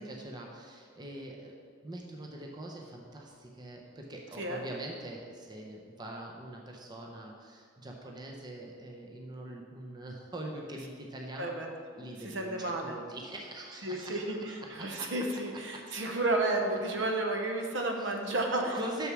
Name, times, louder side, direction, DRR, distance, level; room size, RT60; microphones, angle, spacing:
voice 1, 0.0-11.6 12.0-15.1 15.7-15.8 18.0-18.1 18.7-19.1, right 1 dB, 20° right, 0 dB, 0.8 m, -43 dB
voice 2, 11.4-11.7 12.2-13.0 13.8-18.8, right 2 dB, 60° right, 2 dB, 0.9 m, -32 dB
6.6 x 6.2 x 6.0 m, 2.1 s
head